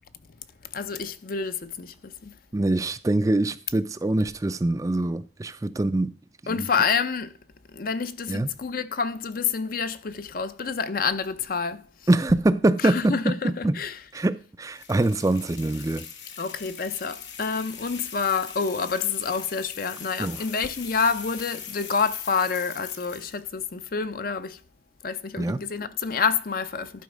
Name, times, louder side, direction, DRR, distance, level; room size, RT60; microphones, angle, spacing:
voice 1, 0.7-2.3 6.5-7.3 7.7-11.8 12.8-14.0 16.4-24.6 25.0-26.9, left 5 dB, 55° left, 0.6 m, -28 dB
voice 2, 2.5-6.1 6.4-6.7 8.3-8.5 12.1-13.0 13.6-13.7 14.1-16.1 20.2-20.4 25.4-25.6, right 2 dB, 20° right, 0.4 m, -24 dB
sound 1, 14.7-23.5, left 7 dB, 85° left, 1.5 m, -41 dB
11.5 x 4.7 x 5.1 m
head